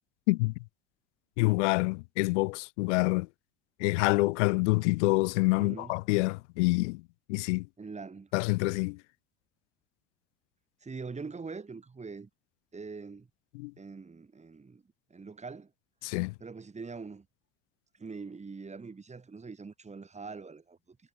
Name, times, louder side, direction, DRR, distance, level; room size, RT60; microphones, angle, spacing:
voice 1, 1.4-3.3 3.8-7.0 7.3-7.7 8.3-9.0 13.5-13.7 16.0-16.3, left 25 dB, 90° left, 1.5 m, -27 dB
voice 2, 5.6-5.9 7.8-8.3 10.8-12.3 12.7-13.3 13.8-15.7 16.4-17.3 17.9-21.0, right 4 dB, 20° right, 2.9 m, -43 dB
supercardioid pair, 100°, 35 cm